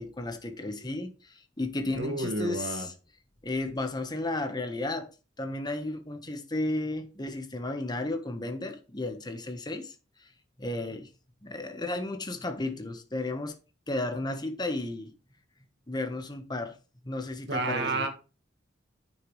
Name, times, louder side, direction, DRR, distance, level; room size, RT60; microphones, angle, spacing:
voice 1, 0.0-2.9 3.4-5.1 5.4-10.3 10.6-11.1 11.4-13.5 13.9-15.1 15.9-16.8 17.0-18.1, left 2 dB, 20° left, 1.3 m, -33 dB
voice 2, 2.0-2.9 17.5-18.1, right 2 dB, 65° right, 1.9 m, -30 dB
9.4 x 6.5 x 3.3 m
head